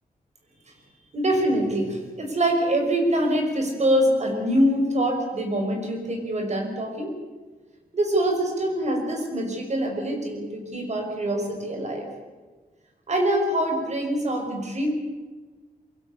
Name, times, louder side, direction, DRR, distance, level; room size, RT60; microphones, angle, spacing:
voice 1, 1.1-7.1 7.9-12.1 13.1-14.9, right 1 dB, 50° right, 3 dB, 5.8 m, -24 dB
23.5 x 16.5 x 8.8 m, 1.3 s
wide cardioid pair, 130°, 15 cm